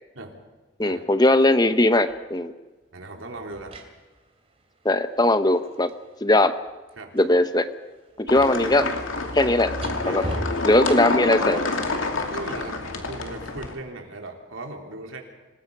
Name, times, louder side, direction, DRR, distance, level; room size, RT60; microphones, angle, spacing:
voice 1, 0.8-2.5 4.8-5.9 6.2-6.5 7.1-7.7 8.2-8.9 9.3-9.7 10.1-10.2 10.6-11.6, left 1 dB, 20° left, 11 dB, 0.8 m, -19 dB
sound 1, 2.1-2.3 3.3-7.4 7.7-11.4 13.5-13.7, right 1 dB, 30° right, 2.7 m, -39 dB
voice 2, 2.9-3.8 7.0-7.1 8.3-8.5 10.0-10.5 12.3-15.2, right 2 dB, 85° right, 2 dB, 3.5 m, -38 dB
sound 2, 8.3-13.7, left 2 dB, 85° left, 2.7 m, -28 dB
26.5 x 20.0 x 5.5 m, 1.2 s
head